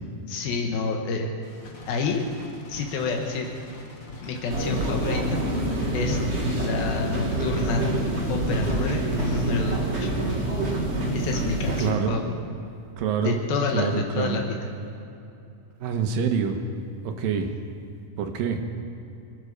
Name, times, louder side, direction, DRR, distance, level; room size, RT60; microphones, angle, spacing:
voice 1, 0.3-1.3 1.9-2.3 2.7-3.5 4.2-5.4 5.9-6.2 6.6-7.8 8.3-10.4 11.1-12.3 13.2-14.7, left 4 dB, 85° left, 2 dB, 3.0 m, -28 dB
sound 1, 1.4-9.7, left 2 dB, 50° left, 1.0 m, -44 dB
sound 2, 4.5-11.9, right 1 dB, 35° right, 1.1 m, -26 dB
voice 2, 11.8-12.2 13.0-13.4 13.7-14.4 15.8-16.6 17.0-17.5 18.2-18.6, right 6 dB, 80° right, 5 dB, 2.8 m, -26 dB
22.0 x 9.7 x 6.5 m, 2.7 s
omnidirectional pair, 4.2 m